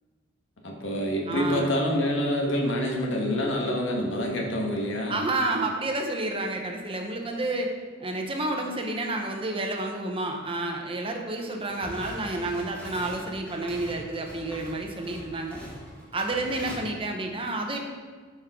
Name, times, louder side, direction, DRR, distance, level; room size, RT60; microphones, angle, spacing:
voice 1, 0.6-5.2, equal, 80° left, 0 dB, 1.5 m, -27 dB
voice 2, 1.3-1.7 5.1-7.7 8.0-15.6 16.1-17.8, right 2 dB, 30° right, 2 dB, 1.0 m, -30 dB
sound 1, 11.6-16.7, equal, 10° left, 2.6 m, -43 dB
12.5 x 5.4 x 3.7 m, 1.5 s
head